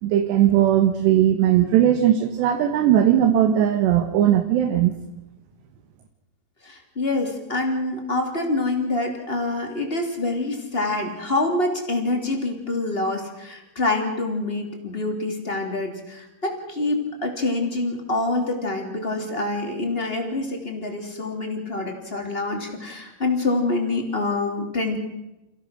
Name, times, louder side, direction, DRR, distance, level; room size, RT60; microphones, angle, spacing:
voice 1, 0.0-4.9, right 11 dB, 85° right, 6 dB, 3.5 m, -18 dB
voice 2, 6.6-25.0, left 2 dB, 15° left, 3 dB, 2.8 m, -26 dB
29.5 x 16.5 x 6.5 m, 0.94 s
omnidirectional pair, 4.8 m